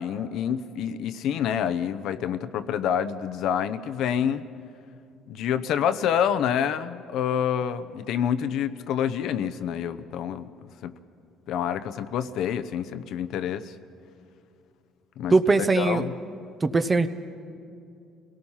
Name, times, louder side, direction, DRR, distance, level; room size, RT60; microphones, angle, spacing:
voice 1, 0.0-4.4 5.3-10.5 10.8-11.0 11.5-13.7 15.2-15.3 15.6-16.1, left 9 dB, 70° left, 10 dB, 0.8 m, -27 dB
voice 2, 15.3-16.0 16.6-17.1, right 3 dB, 20° right, 11 dB, 0.8 m, -20 dB
28.5 x 18.0 x 5.7 m, 2.5 s
cardioid pair, 110°, 0 cm